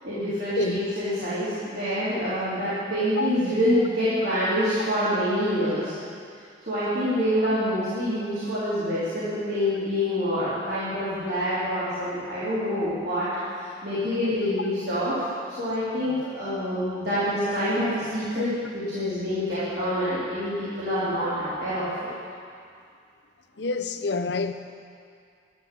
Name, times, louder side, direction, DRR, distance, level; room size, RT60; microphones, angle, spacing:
voice 1, 0.0-6.0 6.7-13.3 13.8-15.3 15.6-22.1, equal, 60° right, -13 dB, 3.7 m, -26 dB
voice 2, 23.6-24.5, left 4 dB, 65° left, 9 dB, 0.7 m, -27 dB
12.0 x 11.0 x 7.7 m, 2.3 s
head